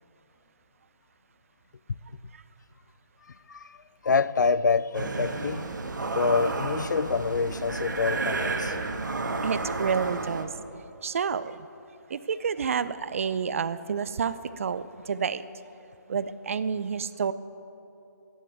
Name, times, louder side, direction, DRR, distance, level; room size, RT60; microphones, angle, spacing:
voice 1, 4.0-5.7 6.1-8.8, left 5 dB, 70° left, 0.4 m, -26 dB
sound 1, 4.9-10.5, right 3 dB, 70° right, 1.5 m, -31 dB
voice 2, 9.4-10.5 11.0-11.6 12.1-14.3 14.6-14.8 15.1-15.4 16.1-17.3, right 6 dB, 45° right, 0.5 m, -29 dB
12.5 x 9.5 x 9.0 m
figure-of-eight pair, 160°, 10 cm